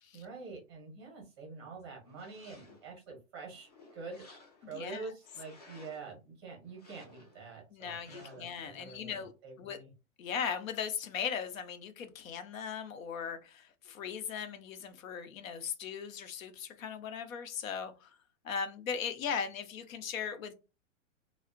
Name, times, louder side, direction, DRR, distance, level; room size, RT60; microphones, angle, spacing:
voice 1, 0.1-4.2 4.7-9.2 9.4-9.9, right 4 dB, 20° right, 0.6 m, -46 dB
sound 1, 2.0-2.9 3.4-4.8 5.2-6.1 6.7-7.5 8.0-8.6, left 2 dB, 30° left, 0.4 m, -58 dB
voice 2, 4.6-5.1 7.7-9.8 10.2-18.2 18.4-20.5, left 7 dB, 85° left, 0.7 m, -38 dB
2.5 x 2.0 x 2.4 m
hypercardioid pair, 180°, 39 cm